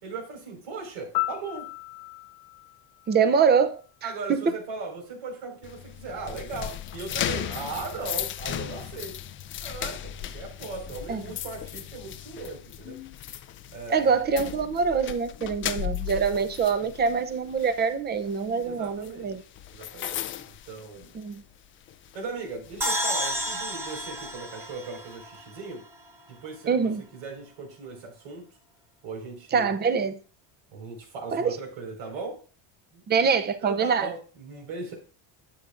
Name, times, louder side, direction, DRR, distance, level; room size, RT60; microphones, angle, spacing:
voice 1, 0.0-1.7 4.0-9.2 9.6-13.0 13.7-14.2 18.5-19.3 19.7-21.1 22.1-25.9 26.3-28.5 29.0-29.7 30.7-32.4 32.9-33.3 33.6-34.9, right 4 dB, 85° right, 4.9 m, -38 dB
Piano, 1.1-4.1 12.2-12.4, left 20 dB, 90° left, 0.7 m, -35 dB
voice 2, 3.1-4.5 11.1-11.2 13.9-19.4 21.1-21.4 26.7-27.0 29.5-30.2 31.3-31.6 33.1-34.1, right 6 dB, 25° right, 0.6 m, -24 dB
sound 1, 5.6-21.6 21.9-22.2 22.6-24.3, left 11 dB, 30° left, 0.3 m, -36 dB
sound 2, 22.8-26.1, equal, 5° right, 0.9 m, -31 dB
12.0 x 8.3 x 2.5 m
cardioid pair, 160°, 44 cm